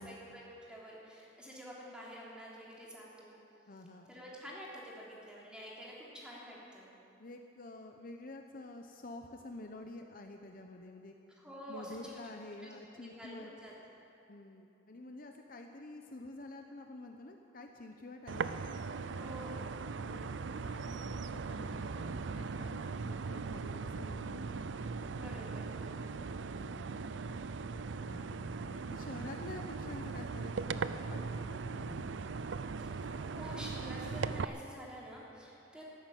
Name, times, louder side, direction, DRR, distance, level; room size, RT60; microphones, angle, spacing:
voice 1, 0.0-3.4 4.1-6.9 11.3-12.4 12.6-13.7 19.1-19.8 25.1-26.2 32.8-35.8, equal, 5° right, -6 dB, 3.3 m, -49 dB
voice 2, 3.7-4.1 7.2-11.1 11.7-13.5 14.3-18.5 20.0-24.7 26.4-27.2 28.1-32.1, left 2 dB, 45° left, 4 dB, 0.8 m, -49 dB
sound 1, 18.3-34.4, right 4 dB, 70° right, 0.5 m, -39 dB
13.5 x 11.5 x 9.1 m, 2.8 s
head